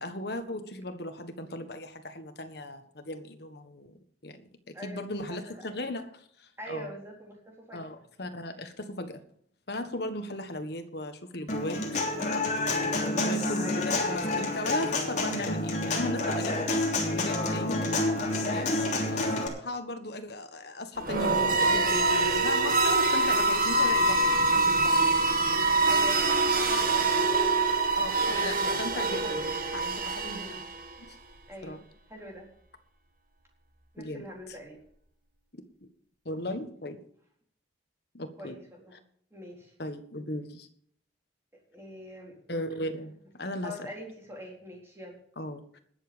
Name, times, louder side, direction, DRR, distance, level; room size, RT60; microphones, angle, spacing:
voice 1, 0.0-4.0 4.2-4.4 4.7-6.9 7.7-9.2 9.7-12.0 13.2-16.6 17.1-17.9 18.5-25.0 28.0-29.4 29.7-30.6 31.6-31.8 34.0-34.3 36.2-37.0 38.1-38.5 39.8-40.7 42.5-43.9 45.4-45.8, left 1 dB, 55° left, 8 dB, 1.5 m, -37 dB
voice 2, 4.7-5.6 6.6-7.8 13.0-13.9 25.9-29.5 30.2-30.7 31.5-32.5 33.9-34.8 38.4-39.0 39.3-39.7 41.7-42.4 43.6-45.2, equal, 15° right, -1 dB, 4.0 m, -44 dB
Human voice / Acoustic guitar, 11.5-19.5, left 2 dB, 40° left, 3.2 m, -29 dB
sound 1, 21.0-30.9, right 3 dB, 45° right, 1.7 m, -25 dB
20.0 x 7.3 x 5.2 m, 0.64 s
head